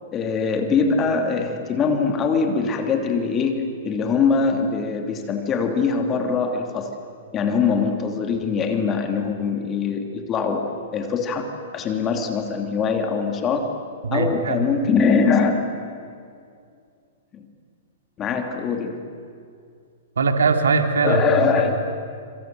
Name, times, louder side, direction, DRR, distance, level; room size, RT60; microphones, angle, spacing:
voice 1, 0.1-7.0 7.3-13.8 14.1-15.6 17.3-17.4 18.2-19.0 21.0-21.8, left 5 dB, 25° left, 5 dB, 2.8 m, -22 dB
voice 2, 14.0-14.6 20.2-21.5, right 4 dB, 80° right, 5 dB, 3.0 m, -21 dB
26.5 x 26.5 x 7.9 m, 2.3 s
hypercardioid pair, 115°, 0 cm